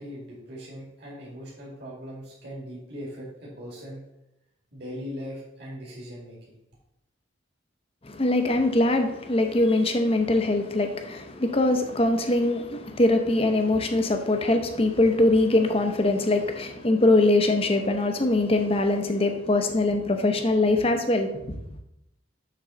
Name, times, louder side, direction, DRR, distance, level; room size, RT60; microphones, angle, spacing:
voice 1, 0.0-4.0 4.7-6.4, equal, 55° right, -6 dB, 2.3 m, -39 dB
voice 2, 8.0-21.3, left 2 dB, 30° left, 6 dB, 0.7 m, -22 dB
6.8 x 3.8 x 6.2 m, 0.85 s
head